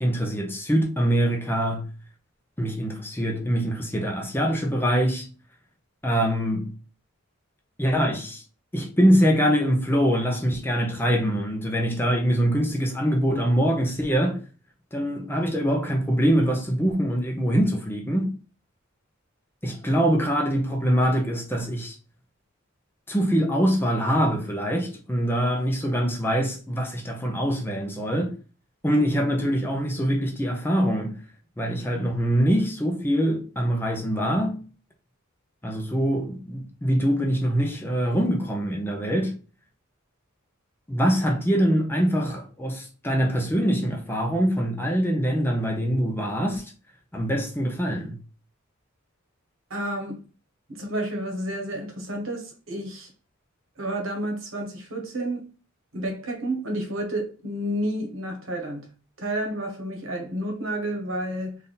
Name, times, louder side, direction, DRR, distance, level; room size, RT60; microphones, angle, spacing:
voice 1, 0.0-1.9 2.6-5.3 6.0-6.7 7.8-8.4 8.7-14.4 14.9-18.4 19.6-22.0 23.1-28.4 28.8-31.2 31.6-34.7 35.6-39.4 40.9-46.7 47.1-48.2, equal, 10° left, 0.7 m, -24 dB
voice 2, 49.7-50.2 50.7-53.1 53.8-55.5 55.9-58.9 59.2-61.6, right 1 dB, 70° right, 1.3 m, -30 dB
3.6 x 2.7 x 4.0 m
head